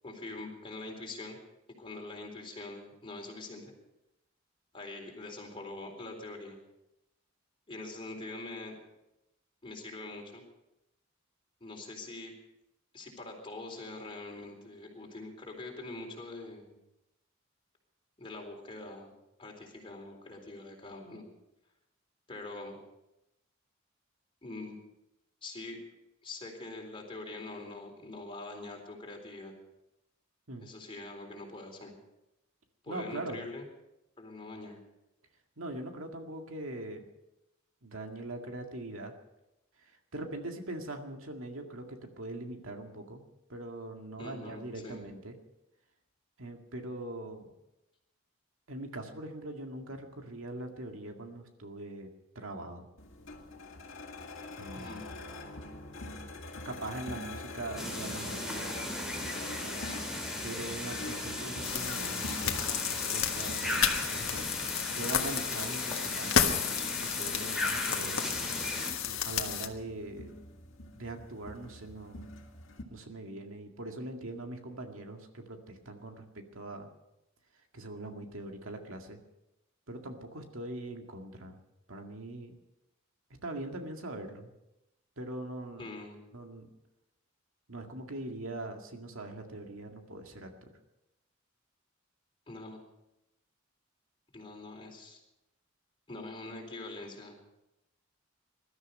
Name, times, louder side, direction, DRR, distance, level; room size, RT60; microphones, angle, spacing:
voice 1, 0.0-1.4 1.8-3.7 4.7-6.6 7.7-8.7 9.6-10.4 11.6-12.3 12.9-16.7 18.2-19.1 19.4-21.2 22.3-22.8 24.4-24.8 25.4-25.8 26.2-29.5 30.6-31.9 32.8-33.6 34.2-34.8 44.2-45.0 54.7-55.1 85.8-86.2 92.5-92.8 94.3-95.2 96.1-97.4, left 2 dB, 25° left, 1 dB, 3.9 m, -44 dB
voice 2, 32.9-33.4 35.6-37.0 37.8-39.1 40.1-43.2 43.5-45.3 46.4-47.5 48.7-52.1 52.4-52.9 54.6-55.0 56.7-58.7 60.4-62.7 62.9-68.3 69.0-70.3 70.9-72.3 72.9-76.9 77.7-79.2 79.9-81.6 81.9-82.6 83.4-84.5 85.2-85.9 86.3-86.7 87.7-90.5, right 2 dB, 85° right, 3 dB, 2.1 m, -42 dB
sound 1, 53.0-72.8, left 2 dB, 70° left, 2.2 m, -45 dB
sound 2, 57.8-68.9, left 1 dB, 5° right, 3.4 m, -37 dB
sound 3, 61.6-69.7, left 8 dB, 85° left, 1.4 m, -32 dB
20.5 x 13.0 x 5.4 m, 0.90 s
head